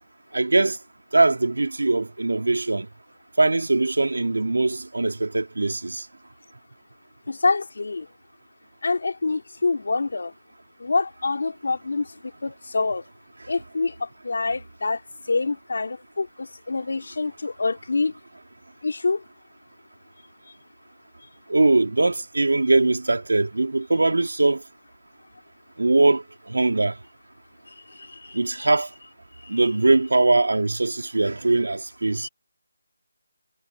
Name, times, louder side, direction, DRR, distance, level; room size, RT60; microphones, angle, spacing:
voice 1, 0.3-0.8 1.1-2.9 3.4-6.1 21.5-24.6 25.8-27.0 28.3-28.9 29.5-32.3, right 2 dB, 80° right, 3.1 m, -21 dB
voice 2, 7.3-8.1 8.8-10.3 10.8-12.1 12.4-13.0 13.5-15.0 15.3-18.1 18.8-19.2 27.7-28.7 29.4-29.7 32.2-32.3, left 3 dB, 50° left, 3.9 m, -26 dB
figure-of-eight pair, 180°, 0 cm